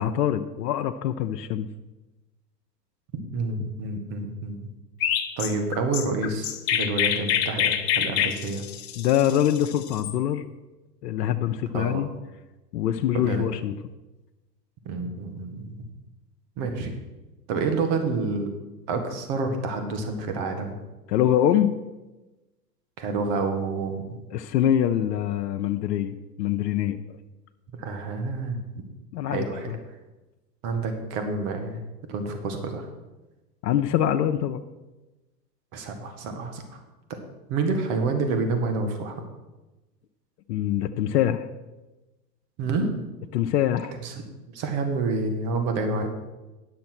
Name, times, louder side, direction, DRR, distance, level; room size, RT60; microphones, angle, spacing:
voice 1, 0.0-1.7 9.0-10.4 11.0-12.1 12.7-13.7 21.1-21.7 24.3-27.0 29.1-29.8 33.6-34.6 40.5-41.5 43.3-43.9, left 11 dB, 75° left, 6 dB, 0.7 m, -24 dB
voice 2, 3.1-4.6 5.4-8.6 11.7-12.0 13.1-13.4 14.9-15.8 16.6-16.9 17.5-18.5 18.9-20.8 23.0-24.0 27.8-28.6 29.2-29.7 30.6-31.8 32.1-32.9 35.7-36.8 37.1-37.2 37.5-39.2 42.6-43.0 44.0-44.1 44.5-46.1, right 3 dB, 45° right, 6 dB, 1.9 m, -28 dB
Chirp tweet, 5.0-10.1, left 10 dB, 55° left, 1.1 m, -26 dB
10.5 x 6.5 x 6.1 m, 1.1 s
hypercardioid pair, 115°, 49 cm